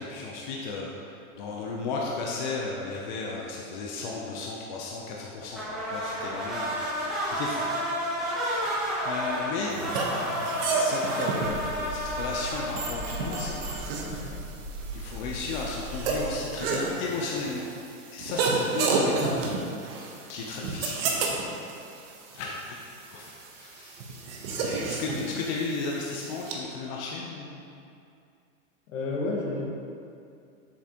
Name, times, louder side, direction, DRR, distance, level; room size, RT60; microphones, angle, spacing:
voice 1, 0.0-6.8 7.3-7.6 9.0-9.8 10.7-13.6 13.9-14.6 14.9-17.7 18.1-19.5 20.3-21.0 22.3-24.2 24.6-27.6, left 4 dB, 35° left, -2 dB, 0.6 m, -34 dB
sound 1, 5.5-14.0, equal, ahead, 0.9 m, -31 dB
voice 2, 9.6-10.4 19.2-19.3 28.9-29.6, left 2 dB, 60° left, -2 dB, 1.6 m, -33 dB
sound 2, 9.7-26.5, right 4 dB, 40° right, 0.9 m, -32 dB
sound 3, 11.4-16.3, right 1 dB, 20° right, 0.6 m, -38 dB
7.3 x 7.1 x 2.9 m, 2.4 s
hypercardioid pair, 150°, 44 cm